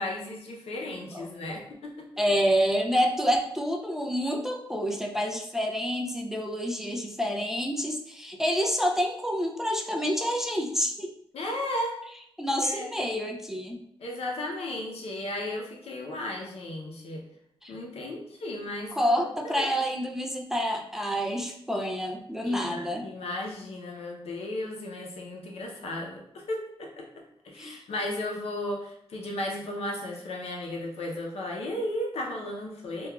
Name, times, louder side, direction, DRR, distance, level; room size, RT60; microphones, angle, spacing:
voice 1, 0.0-2.1 11.3-12.0 12.6-12.9 14.0-17.2 17.7-19.7 22.4-27.0 27.4-33.1, left 1 dB, 85° left, 0 dB, 0.6 m, -35 dB
voice 2, 2.2-11.1 12.4-13.8 17.6-17.7 18.9-23.1 27.6-27.8, equal, 5° right, 1 dB, 0.3 m, -28 dB
2.9 x 2.3 x 2.3 m, 0.74 s
wide cardioid pair, 105°, 10 cm